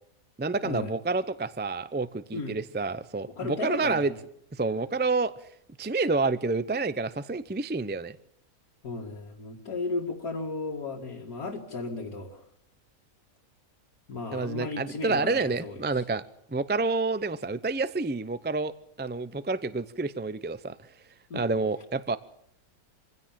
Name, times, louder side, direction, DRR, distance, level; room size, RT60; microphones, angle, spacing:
voice 1, 0.4-4.1 4.5-5.3 5.8-8.2 14.3-16.2 16.5-18.7 19.0-20.8 21.3-22.2, right 3 dB, 15° right, 14 dB, 0.4 m, -28 dB
voice 2, 3.4-4.1 8.8-12.4 14.1-16.0 21.3-21.5, left 3 dB, 85° left, -3 dB, 2.8 m, -35 dB
25.5 x 16.5 x 7.5 m, 0.73 s
omnidirectional pair, 1.6 m